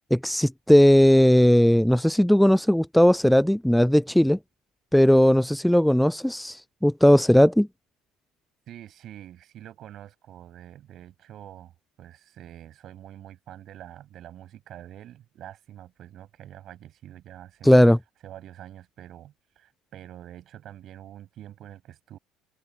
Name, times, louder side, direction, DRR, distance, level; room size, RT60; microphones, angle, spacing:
voice 1, 0.1-4.4 4.9-7.7 17.6-18.0, equal, ahead, 0.3 m, -18 dB
voice 2, 8.7-11.7 12.0-17.8 18.2-22.2, right 12 dB, 45° right, 5.8 m, -45 dB
figure-of-eight pair, 60°, 0 cm